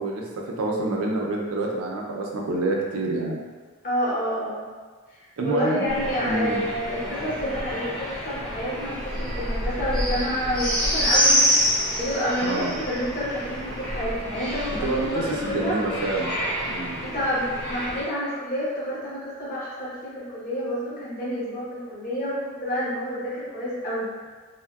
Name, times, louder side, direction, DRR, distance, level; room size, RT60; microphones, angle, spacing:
voice 1, 0.0-3.4 5.4-5.9 6.2-6.6 12.4-12.8 14.8-17.0, right 2 dB, 80° right, -1 dB, 0.5 m, -27 dB
voice 2, 3.8-4.6 5.1-15.7 17.0-24.1, equal, 35° left, -9 dB, 0.8 m, -29 dB
sound 1, 5.9-18.0, equal, 5° left, 0.5 m, -27 dB
3.5 x 2.0 x 2.3 m, 1.4 s
head